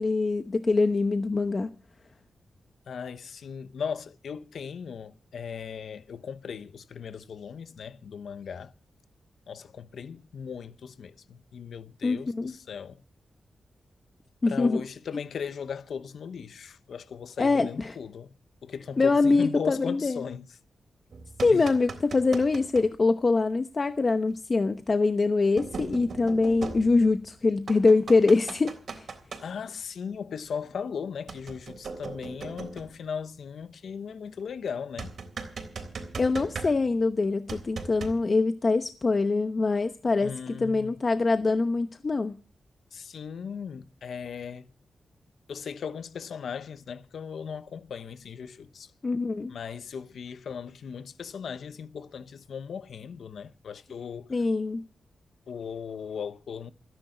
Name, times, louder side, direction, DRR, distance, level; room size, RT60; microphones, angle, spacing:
voice 1, 0.0-1.7 12.0-12.5 14.4-14.8 17.4-17.9 19.0-20.2 21.4-29.1 36.2-42.3 49.0-49.5 54.3-54.8, left 3 dB, 35° left, 0.9 m, -24 dB
voice 2, 2.9-8.7 9.5-13.0 14.5-18.3 18.6-20.6 21.5-21.7 29.4-35.1 40.2-41.0 42.9-44.7 45.5-48.9 49.5-54.4 55.5-56.7, left 6 dB, 80° left, 0.9 m, -37 dB
sound 1, 21.1-22.9 24.3-24.4 25.6-27.3 27.7-29.4 31.3-33.0 35.0-37.1 37.5-38.2, right 4 dB, 65° right, 3.4 m, -39 dB
29.0 x 10.5 x 3.8 m
wide cardioid pair, 115°, 0 cm